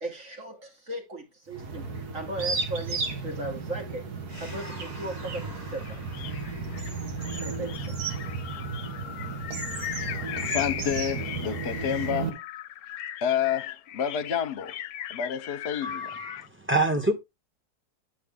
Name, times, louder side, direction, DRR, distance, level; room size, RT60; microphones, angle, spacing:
voice 1, 0.0-4.1 4.4-6.0 6.9-7.0 7.4-8.0, right 2 dB, 55° right, 2.8 m, -37 dB
sound 1, 1.5-12.3, right 4 dB, 75° right, 2.0 m, -34 dB
sound 2, 4.3-12.1, left 2 dB, 25° right, 2.4 m, -47 dB
sound 3, 5.9-16.5, left 11 dB, 70° left, 1.0 m, -38 dB
voice 2, 9.7-10.1 10.4-12.4 13.2-14.8 15.1-16.2, left 8 dB, 50° left, 1.0 m, -30 dB
voice 3, 15.8-17.1, right 2 dB, 10° right, 0.9 m, -26 dB
9.4 x 5.5 x 3.6 m
omnidirectional pair, 1.7 m